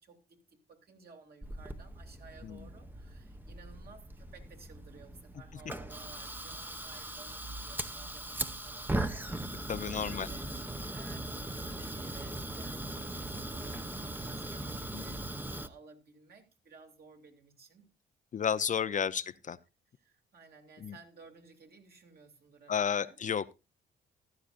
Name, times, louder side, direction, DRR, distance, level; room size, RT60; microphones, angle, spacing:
voice 1, 0.0-10.5 10.8-15.2 15.6-18.0 18.6-19.3 20.0-23.2, right 5 dB, 50° right, 2.7 m, -56 dB
Fire, 1.4-15.7, right 1 dB, 10° right, 0.8 m, -39 dB
voice 2, 9.7-10.3 14.9-15.2 18.3-19.6 20.8-20.9 22.7-23.5, left 7 dB, 40° left, 0.5 m, -32 dB
14.5 x 12.0 x 2.5 m
cardioid pair, 90°, 20 cm